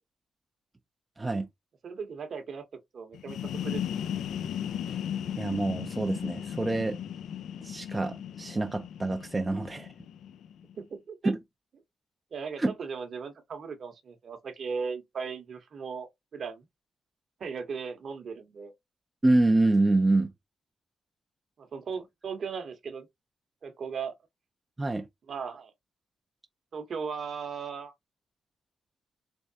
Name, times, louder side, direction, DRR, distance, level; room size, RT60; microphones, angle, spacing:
voice 1, 1.2-1.5 4.9-5.0 5.4-7.0 7.6-9.9 11.2-11.4 12.6-12.7 19.2-20.3 24.8-25.1, right 2 dB, 15° right, 0.4 m, -26 dB
voice 2, 1.8-2.6 2.9-3.8 10.8-11.3 12.3-16.7 17.4-18.7 21.6-23.1 23.6-24.1 25.3-25.7 26.7-27.9, right 5 dB, 50° right, 0.8 m, -37 dB
sound 1, 3.1-10.7, left 9 dB, 85° left, 0.3 m, -36 dB
3.4 x 3.0 x 2.7 m
wide cardioid pair, 150°, 0 cm